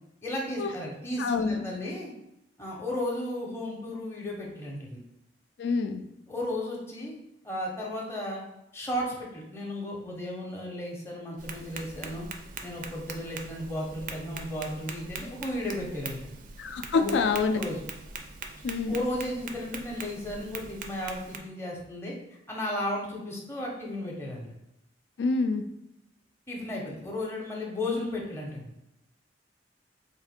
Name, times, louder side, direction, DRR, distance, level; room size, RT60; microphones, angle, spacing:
voice 1, 0.2-2.1 2.6-5.0 6.3-7.1 7.4-8.4 8.7-12.2 12.6-16.3 16.9-17.8 18.9-22.2 22.5-24.5 26.5-28.7, left 1 dB, 15° left, -3 dB, 0.6 m, -34 dB
voice 2, 1.2-1.6 5.6-6.0 16.6-17.6 18.6-19.0 25.2-25.6, left 4 dB, 75° left, 8 dB, 0.4 m, -26 dB
Tap, 11.4-21.4, right 4 dB, 50° right, 0.4 m, -42 dB
3.4 x 2.5 x 4.2 m, 0.85 s
head